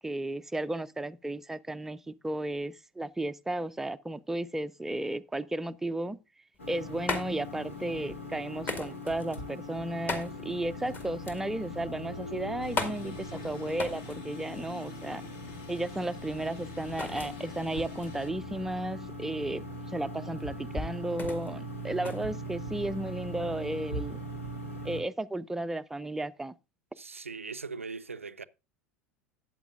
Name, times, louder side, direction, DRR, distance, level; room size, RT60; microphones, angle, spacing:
voice 1, 0.0-6.2 6.7-15.2 15.7-24.2 24.8-26.6, right 1 dB, 5° right, 0.4 m, -34 dB
sound 1, 6.5-23.1, left 3 dB, 25° left, 1.9 m, -40 dB
sound 2, 6.6-25.0, equal, 75° left, 2.4 m, -40 dB
sound 3, 12.6-18.3, left 6 dB, 50° left, 2.0 m, -49 dB
voice 2, 27.0-28.4, right 4 dB, 80° right, 0.4 m, -40 dB
13.0 x 8.6 x 2.4 m
figure-of-eight pair, 80°, 7 cm